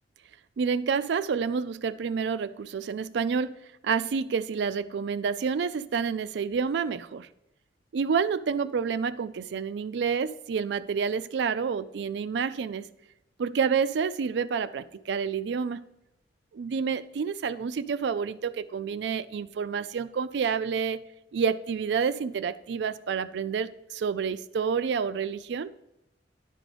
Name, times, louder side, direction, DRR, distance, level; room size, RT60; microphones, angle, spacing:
voice 1, 0.6-3.5 3.8-7.3 7.9-12.8 13.4-15.8 16.5-21.0 21.3-25.7, right 6 dB, 65° right, 14 dB, 0.4 m, -29 dB
10.5 x 3.8 x 5.0 m, 0.89 s
head